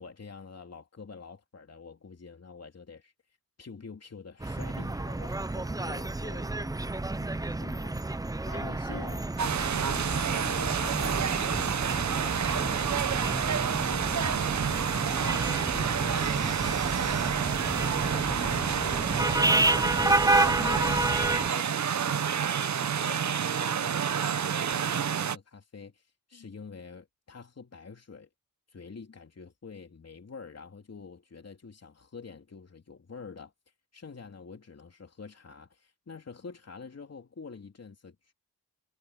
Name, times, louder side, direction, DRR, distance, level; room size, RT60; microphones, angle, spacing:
voice 1, 0.0-3.1 3.6-5.9 8.5-9.2 13.6-14.5 15.7-21.8 22.0-26.0 26.3-28.3 28.7-33.5 33.9-38.3, left 5 dB, 45° left, 3.3 m, -47 dB
sound 1, 4.4-21.5, right 2 dB, 10° right, 0.6 m, -30 dB
voice 2, 5.7-8.0 8.4-9.3 9.7-13.0 26.3-26.5, left 6 dB, 60° left, 3.1 m, -47 dB
sound 2, 9.4-25.4, right 8 dB, 50° right, 0.8 m, -29 dB
wide cardioid pair, 95°, 36 cm